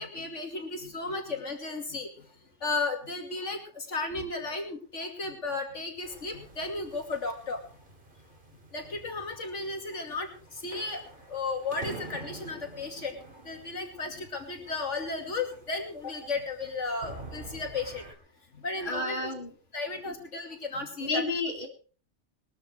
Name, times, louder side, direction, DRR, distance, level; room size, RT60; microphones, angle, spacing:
voice 1, 0.0-2.3 2.6-7.6 8.7-18.0 18.5-19.3 19.7-21.2, left 3 dB, 85° left, 4 dB, 3.0 m, -34 dB
sound 1, 6.0-18.1, right 2 dB, 45° right, 3.0 m, -48 dB
voice 2, 18.8-19.5 21.0-21.7, left 2 dB, 45° left, 2 dB, 3.1 m, -30 dB
21.5 x 13.0 x 3.2 m, 0.38 s
omnidirectional pair, 1.2 m